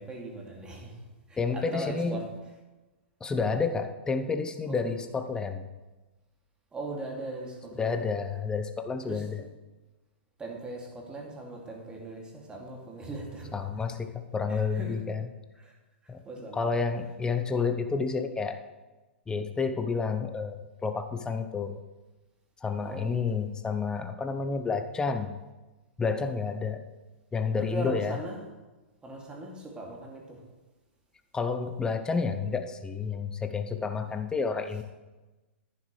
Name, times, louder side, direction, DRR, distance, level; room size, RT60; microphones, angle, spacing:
voice 1, 0.0-2.3 4.6-5.0 6.7-8.2 9.0-9.5 10.4-13.5 14.5-14.9 15.6-15.7 16.0-16.7 22.8-23.4 27.6-28.4 29.0-30.4 33.9-34.1, right 1 dB, 15° right, -1 dB, 2.4 m, -40 dB
voice 2, 1.4-2.2 3.2-5.7 7.8-9.4 13.5-15.3 16.1-16.2 16.5-18.6 19.3-21.8 22.6-25.4 26.0-26.8 27.3-28.2 31.3-34.8, left 5 dB, 10° left, 8 dB, 0.7 m, -30 dB
11.0 x 9.6 x 3.2 m, 1.2 s
figure-of-eight pair, 110°, 6 cm